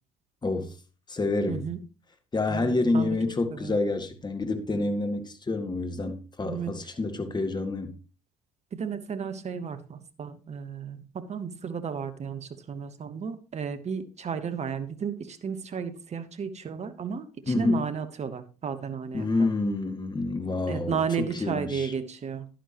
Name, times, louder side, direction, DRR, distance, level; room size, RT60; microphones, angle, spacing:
voice 1, 0.4-0.7 1.1-1.6 2.3-8.0 17.5-17.8 19.1-21.0 21.3-21.9, left 2 dB, 20° left, 1.9 m, -28 dB
voice 2, 1.5-1.8 2.5-3.2 3.5-3.8 6.4-6.8 8.7-19.5 20.7-22.5, right 6 dB, 35° right, 1.3 m, -33 dB
11.0 x 10.5 x 3.0 m
hypercardioid pair, 60°, 20 cm